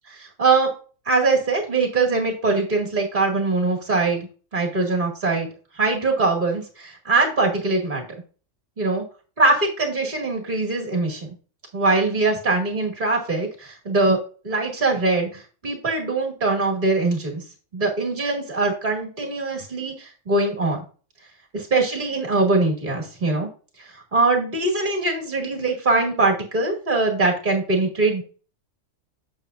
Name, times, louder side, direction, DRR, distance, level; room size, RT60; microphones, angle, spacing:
voice 1, 0.1-0.7 1.1-4.3 4.5-5.5 5.8-8.0 8.8-9.0 9.4-11.3 11.7-14.2 14.4-17.4 17.7-20.8 21.5-23.5 24.1-28.2, right 3 dB, 35° right, 1 dB, 2.3 m, -22 dB
9.0 x 6.6 x 2.5 m, 0.37 s
omnidirectional pair, 1.4 m